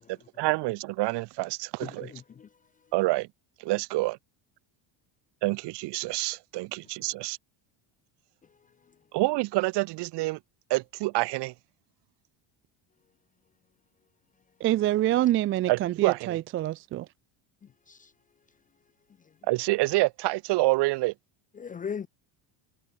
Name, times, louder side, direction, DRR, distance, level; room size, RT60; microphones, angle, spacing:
voice 1, 0.1-2.1 2.9-3.3 3.6-4.2 5.4-7.4 9.1-10.4 10.7-11.5 15.7-16.4 19.5-21.1, right 21 dB, 60° right, 2.2 m, -27 dB
voice 2, 1.8-2.5 17.9-18.0 21.6-22.1, left 7 dB, 20° left, 0.6 m, -37 dB
voice 3, 14.6-17.1, right 14 dB, 30° right, 0.3 m, -26 dB
cardioid pair, 175°, 46 cm